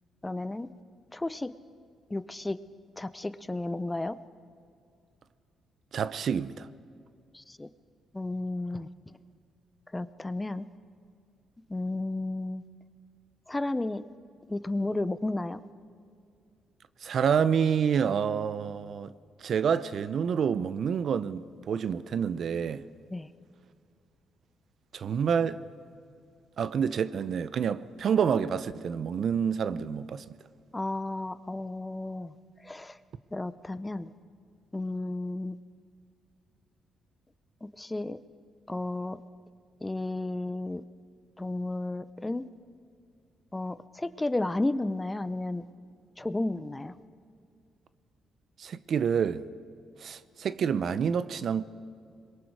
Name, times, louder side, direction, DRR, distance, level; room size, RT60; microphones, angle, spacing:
voice 1, 0.2-0.7 1.1-1.5 2.1-2.6 3.0-4.2 7.3-7.7 8.1-8.9 9.9-10.7 11.7-12.6 13.5-14.0 14.5-15.6 23.1-23.3 30.7-32.3 32.6-33.0 33.3-34.1 34.7-35.6 37.6-38.2 38.7-39.2 39.8-40.8 41.4-42.4 43.5-45.6 46.2-46.9, left 2 dB, 15° left, 0.7 m, -32 dB
voice 2, 5.9-6.7 17.0-19.1 19.4-22.8 24.9-25.6 26.6-30.2 48.6-49.4 50.0-51.6, right 7 dB, 60° right, 0.7 m, -28 dB
26.5 x 22.0 x 4.8 m
cardioid pair, 90°, 0 cm